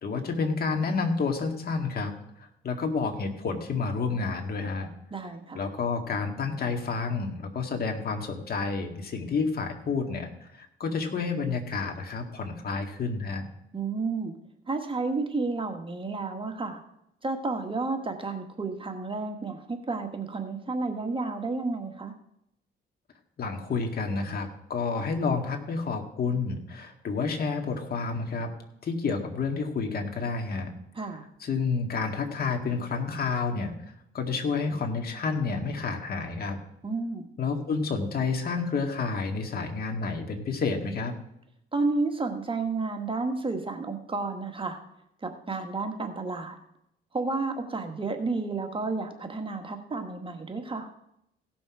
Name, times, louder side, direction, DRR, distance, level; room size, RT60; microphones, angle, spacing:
voice 1, 0.0-2.1 2.4-4.9 5.5-13.4 23.4-28.5 28.8-30.7 31.4-33.7 34.1-36.6 37.4-41.2, left 4 dB, 50° left, 4 dB, 2.0 m, -30 dB
voice 2, 5.1-5.6 13.7-14.3 14.7-16.8 17.2-22.1 30.9-31.2 36.8-37.2 41.7-44.8 45.2-46.6 47.1-50.9, right 3 dB, 25° right, 5 dB, 1.5 m, -31 dB
16.5 x 6.1 x 4.8 m, 0.77 s
cardioid pair, 90°, 20 cm